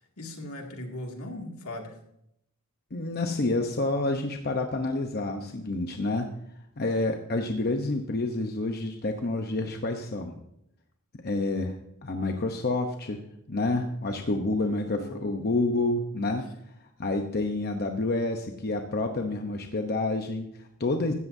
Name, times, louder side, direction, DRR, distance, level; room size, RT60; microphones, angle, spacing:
voice 1, 0.2-2.0 14.2-14.4 14.9-15.5, left 1 dB, 80° left, 1 dB, 2.3 m, -39 dB
voice 2, 2.9-6.3 6.8-10.4 11.2-11.8 12.0-13.2 13.5-16.5 17.0-21.1, left 2 dB, 45° left, 4 dB, 0.9 m, -28 dB
16.0 x 13.5 x 2.7 m, 0.78 s
head